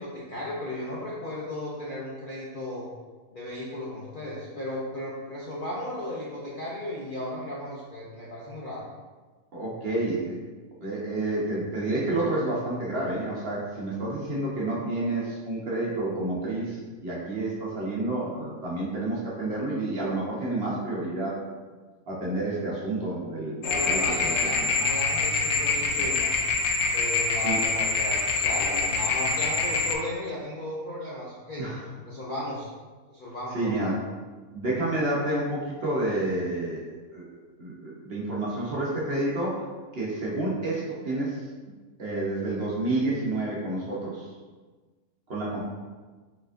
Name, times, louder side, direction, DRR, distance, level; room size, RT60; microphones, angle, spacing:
voice 1, 0.0-2.9 3.3-8.9 23.7-26.4 26.9-31.7 32.0-32.7 33.1-33.9, left 1 dB, 50° left, -6 dB, 0.6 m, -35 dB
voice 2, 9.5-10.4 10.8-21.4 22.1-24.7 26.0-26.1 27.4-27.6 31.6-31.9 33.5-34.0 34.5-37.3 37.6-39.6 39.9-41.4 42.0-44.3 45.3-45.6, right 2 dB, 50° right, -5 dB, 0.9 m, -29 dB
sound 1, 23.6-30.0, left 4 dB, 75° left, 1.0 m, -25 dB
4.8 x 4.2 x 2.5 m, 1.4 s
omnidirectional pair, 1.7 m